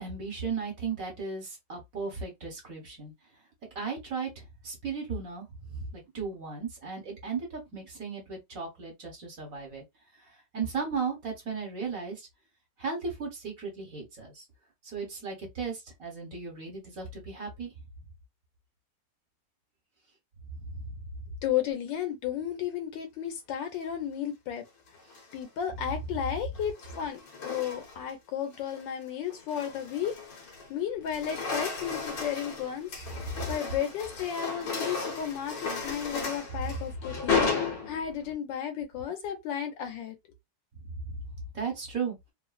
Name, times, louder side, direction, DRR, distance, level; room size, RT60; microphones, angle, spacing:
voice 1, 0.0-3.1 3.7-9.8 10.5-12.3 12.8-14.4 14.8-17.7 20.5-21.0 21.2-21.3 25.8-25.9 33.1-33.5 36.5-36.8 40.8-41.2 41.5-42.2, right 5 dB, 50° right, 1.6 m, -36 dB
voice 2, 21.4-24.6 25.3-30.1 30.7-32.9 33.5-40.2, left 9 dB, 90° left, 1.5 m, -33 dB
sound 1, 24.9-25.4 26.5-28.1 28.5-28.8 29.3-30.7 31.0-38.3, left 4 dB, 65° left, 1.6 m, -34 dB
3.6 x 2.1 x 2.4 m
omnidirectional pair, 1.9 m